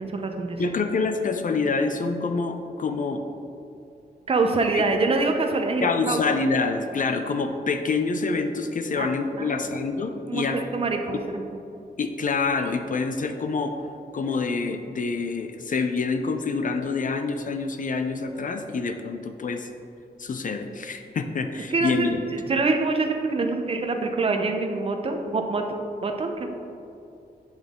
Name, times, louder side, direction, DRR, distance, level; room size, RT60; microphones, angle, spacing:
voice 1, 0.0-0.6 4.3-6.2 9.0-9.1 9.4-9.5 10.3-11.4 21.7-25.6 26.0-26.5, right 3 dB, 35° right, 4 dB, 0.6 m, -25 dB
voice 2, 0.6-3.2 4.7-4.8 5.8-10.6 12.0-13.9 14.1-19.7 20.2-22.2, left 4 dB, 50° left, 6 dB, 0.5 m, -26 dB
7.9 x 5.3 x 3.7 m, 2.6 s
wide cardioid pair, 130°, 17 cm